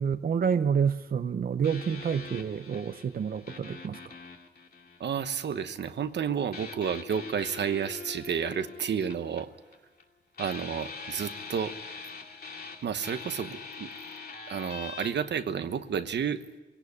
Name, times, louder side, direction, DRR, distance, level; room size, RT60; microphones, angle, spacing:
voice 1, 0.0-4.1, right 7 dB, 55° right, 10 dB, 0.7 m, -28 dB
sound 1, 1.6-5.5 6.5-10.0 10.3-15.1, left 4 dB, 60° left, 2.5 m, -43 dB
voice 2, 5.0-9.5 10.4-11.8 12.8-13.9 14.5-16.6, right 7 dB, 85° right, 9 dB, 1.2 m, -31 dB
22.0 x 17.5 x 9.8 m, 1.2 s
wide cardioid pair, 125°, 18 cm